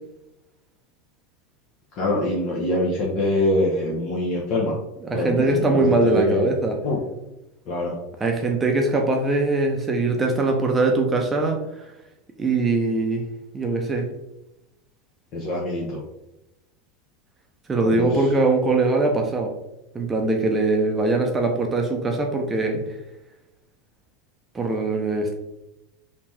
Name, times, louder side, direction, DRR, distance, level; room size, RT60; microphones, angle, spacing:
voice 1, 2.0-4.7 5.1-6.5 6.8-7.0 7.7-7.9 15.3-16.0 17.8-18.1, left 1 dB, 50° left, -3 dB, 0.8 m, -24 dB
voice 2, 5.0-6.8 8.2-11.9 12.4-13.2 13.5-14.1 17.7-19.5 19.9-22.8 24.5-25.3, right 3 dB, 20° right, 2 dB, 0.6 m, -22 dB
3.4 x 2.9 x 3.1 m, 0.90 s
supercardioid pair, 120°, 0 cm